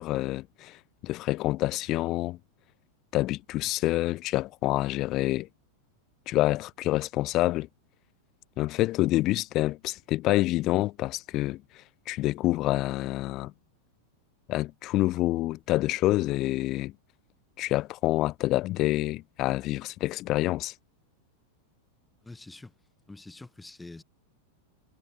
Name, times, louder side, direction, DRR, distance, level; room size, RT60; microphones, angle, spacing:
voice 1, 0.0-2.4 3.1-5.5 6.3-7.7 8.6-11.6 12.1-13.5 14.5-16.9 17.6-20.7, left 17 dB, 35° left, 1.1 m, -27 dB
voice 2, 22.2-22.7 23.1-24.0, left 2 dB, 5° left, 7.9 m, -45 dB
figure-of-eight pair, 90°, 0 cm